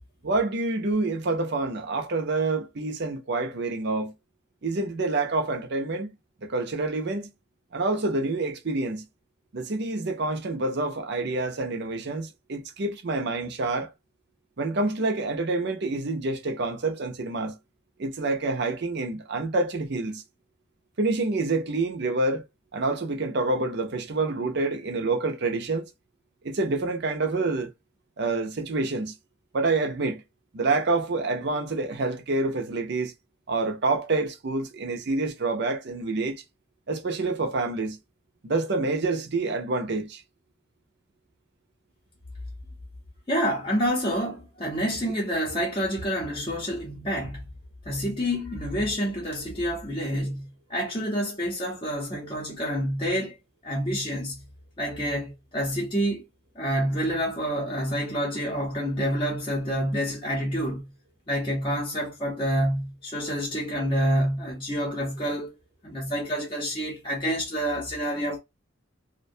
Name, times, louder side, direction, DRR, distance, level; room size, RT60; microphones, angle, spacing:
voice 1, 0.2-4.1 4.6-6.1 6.4-7.3 7.7-9.0 9.5-13.9 14.6-17.6 18.0-20.2 21.0-22.4 22.7-25.9 26.4-27.7 28.2-29.1 29.5-30.2 30.5-33.1 33.5-36.4 36.9-38.0 38.4-40.2, right 3 dB, 50° right, 0.5 m, -27 dB
voice 2, 43.3-47.4 47.8-53.4 53.6-54.4 54.8-56.2 56.5-60.9 61.3-65.5 65.8-68.4, equal, 25° left, 0.6 m, -28 dB
2.5 x 2.1 x 2.6 m
head